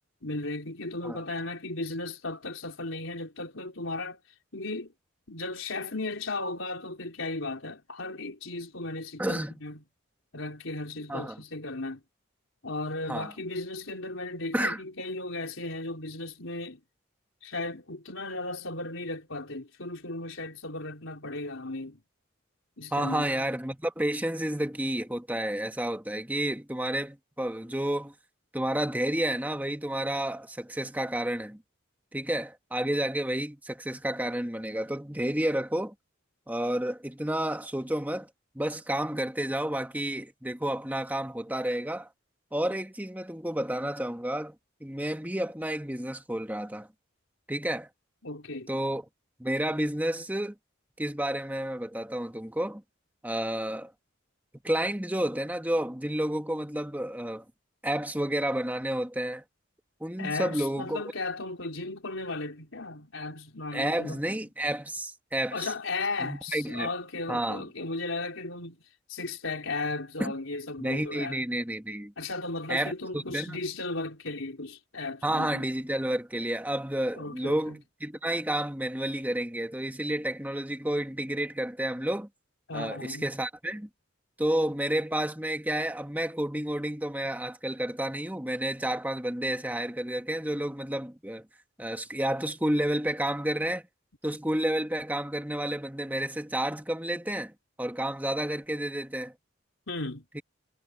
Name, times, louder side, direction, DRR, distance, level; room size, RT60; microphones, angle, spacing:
voice 1, 0.2-4.2 4.5-4.9 5.3-9.8 10.3-12.0 12.6-16.8 17.4-22.0 22.8-23.4 48.2-48.7 60.2-64.4 65.5-68.8 69.1-71.4 72.2-75.6 77.2-77.8 82.7-83.3 99.9-100.2, left 2 dB, 75° left, 3.7 m, -35 dB
voice 2, 9.2-9.6 11.1-11.4 13.1-13.3 14.5-14.8 22.9-28.1 28.5-31.6 32.1-35.9 36.5-38.3 38.6-42.1 42.5-44.6 44.8-46.9 47.5-47.9 48.7-49.1 49.4-50.6 51.0-52.8 53.2-53.9 54.6-57.4 57.8-59.4 60.0-61.0 63.7-65.7 66.2-66.9 67.3-67.6 70.2-70.3 70.8-72.1 72.7-73.6 75.2-82.3 82.7-83.9 84.4-91.5 91.8-93.8 94.2-97.5 97.8-99.3 100.3-100.4, right 1 dB, 10° right, 1.8 m, -30 dB
head